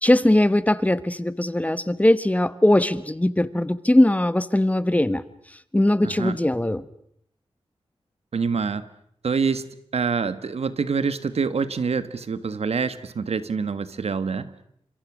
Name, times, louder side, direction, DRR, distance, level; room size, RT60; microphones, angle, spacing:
voice 1, 0.0-5.2 5.7-6.9, left 1 dB, 15° left, 15 dB, 1.1 m, -20 dB
voice 2, 6.0-6.4 8.3-8.8 9.2-9.7 9.9-14.5, right 5 dB, 75° right, 13 dB, 1.5 m, -26 dB
29.5 x 26.5 x 6.2 m, 0.70 s
wide cardioid pair, 95°, 11 cm